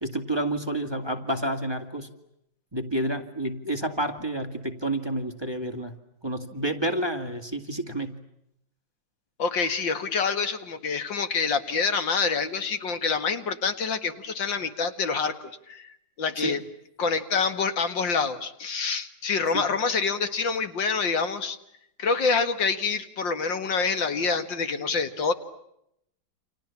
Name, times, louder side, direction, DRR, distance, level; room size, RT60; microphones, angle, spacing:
voice 1, 0.0-2.1 2.7-5.9 6.2-8.2 16.4-16.5 19.5-19.6, right 1 dB, 15° right, 6 dB, 2.2 m, -29 dB
voice 2, 9.4-15.9 16.2-16.6 17.0-21.6 22.0-25.3, left 5 dB, 75° left, 10 dB, 2.5 m, -26 dB
29.5 x 27.5 x 7.2 m, 0.79 s
omnidirectional pair, 2.1 m